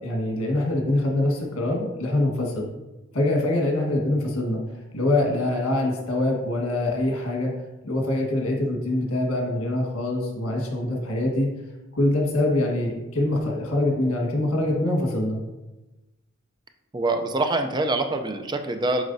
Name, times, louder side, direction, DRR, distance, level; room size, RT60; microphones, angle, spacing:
voice 1, 0.0-2.7 3.1-4.6 4.9-7.5 7.8-11.5 11.9-15.4, left 1 dB, 85° left, 1 dB, 1.5 m, -24 dB
voice 2, 16.9-19.0, right 2 dB, 20° right, 6 dB, 0.4 m, -25 dB
7.8 x 5.2 x 2.6 m, 1.0 s
head